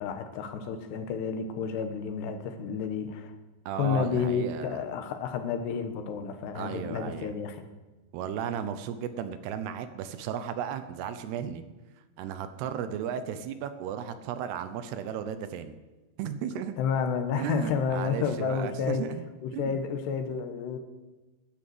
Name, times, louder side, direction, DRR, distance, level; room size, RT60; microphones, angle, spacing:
voice 1, 0.0-3.3 3.8-7.6 16.8-19.0 19.4-20.8, left 6 dB, 80° left, 8 dB, 3.2 m, -30 dB
voice 2, 3.7-4.8 6.6-7.3 8.1-11.6 12.2-15.8 16.2-16.8 17.4-19.2 19.5-19.8, right 8 dB, 80° right, 11 dB, 2.8 m, -35 dB
12.0 x 9.6 x 7.8 m, 1.2 s
omnidirectional pair, 4.9 m